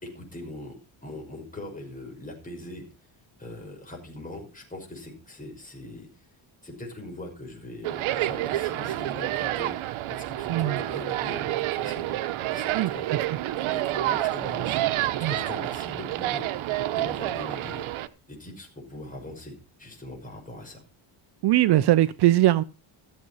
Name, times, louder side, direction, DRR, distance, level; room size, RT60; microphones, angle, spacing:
voice 1, 0.0-2.8 3.4-6.1 6.6-13.1 13.6-17.9 18.3-20.8, left 1 dB, 15° left, 1 dB, 5.9 m, -41 dB
sound 1, 7.8-18.1, right 14 dB, 85° right, 1.1 m, -29 dB
voice 2, 10.5-10.8 12.7-13.4 15.2-15.3 21.4-22.6, right 14 dB, 55° right, 15 dB, 0.6 m, -21 dB
14.5 x 7.7 x 5.6 m, 0.31 s
cardioid pair, 160°, 47 cm